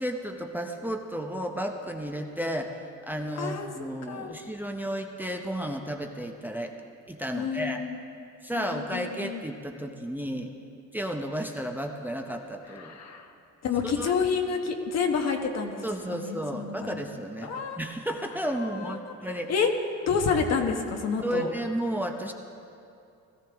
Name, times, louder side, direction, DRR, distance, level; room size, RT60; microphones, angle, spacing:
voice 1, 0.0-2.8 3.0-6.7 7.1-7.8 8.4-10.5 10.9-13.0 13.8-14.1 15.8-19.5 21.2-22.3, equal, 5° right, 3 dB, 0.7 m, -33 dB
voice 2, 3.4-3.7 4.1-4.3 7.3-8.0 8.5-9.4 12.8-13.3 13.6-15.8 16.1-17.0 17.4-17.8 19.5-19.7 20.1-21.5, left 5 dB, 60° left, 4 dB, 1.3 m, -28 dB
17.0 x 14.0 x 3.5 m, 2.6 s
cardioid pair, 110°, 30 cm